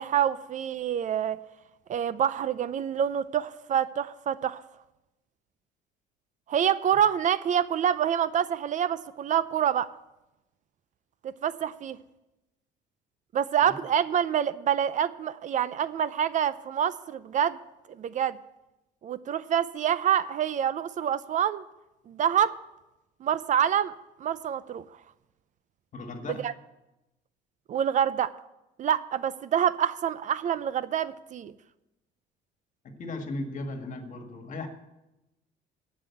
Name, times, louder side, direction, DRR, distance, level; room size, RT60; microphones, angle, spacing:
voice 1, 0.0-1.4 1.9-4.6 6.5-9.9 11.2-12.0 13.3-17.6 17.9-18.4 19.0-21.6 22.1-22.6 23.2-23.9 24.2-24.8 26.3-26.5 27.7-28.3 28.8-31.5, right 9 dB, 50° right, 16 dB, 0.5 m, -26 dB
voice 2, 25.9-26.5 32.8-34.7, left 2 dB, 50° left, 6 dB, 1.8 m, -36 dB
15.5 x 5.5 x 8.4 m, 0.97 s
cardioid pair, 110°, 17 cm